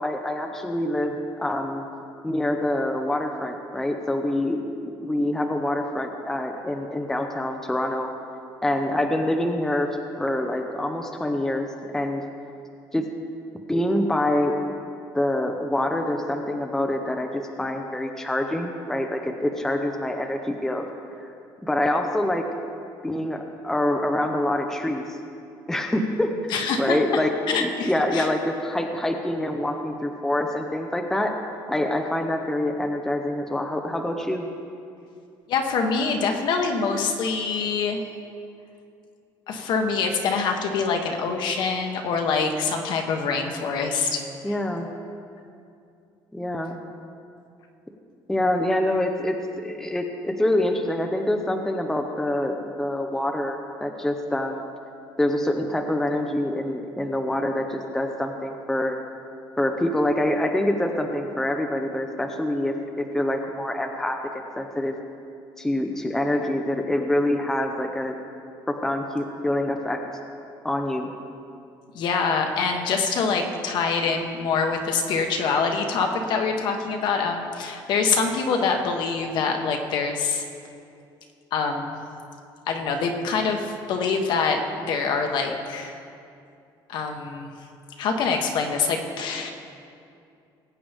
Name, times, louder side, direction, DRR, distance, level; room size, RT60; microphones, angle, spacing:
voice 1, 0.0-1.9 2.2-8.1 8.6-12.2 12.9-13.0 13.7-14.5 15.1-20.9 21.6-22.4 23.0-25.2 25.7-26.3 26.8-31.3 31.7-34.5 44.4-44.9 46.3-46.8 48.3-54.6 55.2-59.0 59.6-64.2 64.6-64.9 65.6-68.1 68.7-70.0 70.6-71.1, left 1 dB, 5° left, 3 dB, 0.7 m, -26 dB
voice 2, 26.5-27.0 27.5-28.3 35.5-38.0 39.5-44.5 71.9-80.4 81.5-82.0 82.7-86.0 86.9-87.5 88.0-89.5, left 5 dB, 60° left, 3 dB, 1.3 m, -25 dB
20.0 x 8.7 x 3.5 m, 2.5 s
cardioid pair, 155°, 9 cm